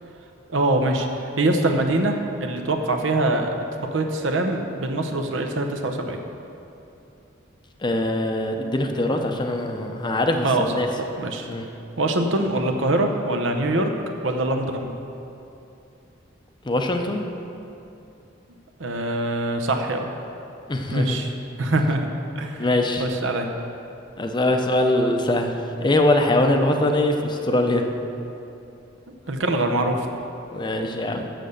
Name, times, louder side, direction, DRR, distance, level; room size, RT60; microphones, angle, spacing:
voice 1, 0.5-1.1 1.4-3.5 3.9-6.2 10.4-11.5 12.0-13.9 14.2-15.0 18.8-20.1 20.9-21.3 21.6-22.1 22.4-22.7 23.0-23.5 29.3-30.1, right 2 dB, 75° right, 4 dB, 0.8 m, -23 dB
voice 2, 7.8-10.9 11.5-11.7 16.6-17.2 20.7-21.2 22.6-23.1 24.2-27.8 30.5-31.3, left 1 dB, 25° left, 4 dB, 0.6 m, -22 dB
7.7 x 6.7 x 6.5 m, 2.8 s
head